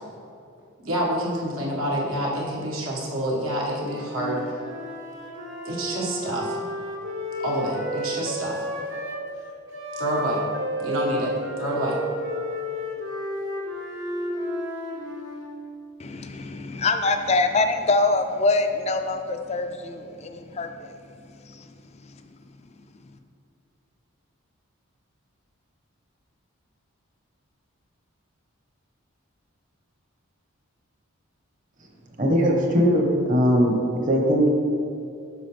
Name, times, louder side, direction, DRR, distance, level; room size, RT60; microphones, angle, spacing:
voice 1, 0.8-4.4 5.6-6.6 7.4-8.6 10.0-10.4 10.8-11.3 11.6-12.0, right 1 dB, 75° right, -4 dB, 1.6 m, -27 dB
Wind instrument woodwind instrument, 3.8-9.2 9.7-15.6, equal, 60° right, 1.1 m, -32 dB
voice 2, 16.0-21.0 21.4-21.6, left 3 dB, 30° left, 7 dB, 0.4 m, -24 dB
voice 3, 32.2-34.5, equal, 40° right, 0 dB, 1.1 m, -20 dB
7.9 x 6.2 x 3.3 m, 2.6 s
head